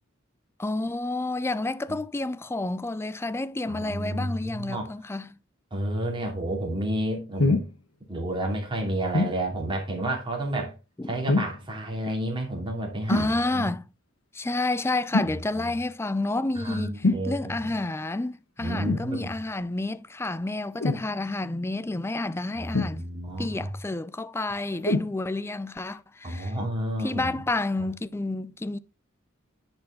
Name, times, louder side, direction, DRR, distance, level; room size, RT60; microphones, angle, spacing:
voice 1, 0.6-5.4 11.0-11.1 13.1-13.8 14.3-23.0 23.4-26.5 27.0-28.8, left 2 dB, 10° left, 0.4 m, -30 dB
voice 2, 3.7-4.9 5.7-7.6 8.1-10.7 11.1-13.7 15.2-15.7 16.6-17.6 18.6-19.3 22.6-23.7 26.2-27.3, right 1 dB, 25° right, 2.7 m, -31 dB
sound 1, 7.4-7.7 9.1-9.4 11.3-11.6 13.1-13.3 15.1-15.4 17.0-17.3 18.8-19.1 20.8-21.1 22.7-23.3 24.8-25.1 25.9-26.0, left 2 dB, 85° left, 1.1 m, -24 dB
10.5 x 4.5 x 3.9 m
head